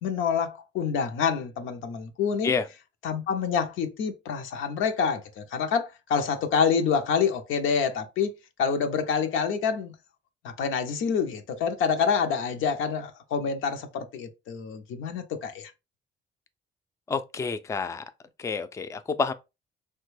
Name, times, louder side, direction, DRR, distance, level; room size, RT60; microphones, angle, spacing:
voice 1, 0.0-2.5 3.0-9.9 10.4-15.7, left 6 dB, 85° left, 0.6 m, -27 dB
voice 2, 17.1-18.1 18.4-19.3, left 5 dB, 15° left, 0.3 m, -28 dB
3.2 x 2.2 x 3.1 m
cardioid pair, 90°, 20 cm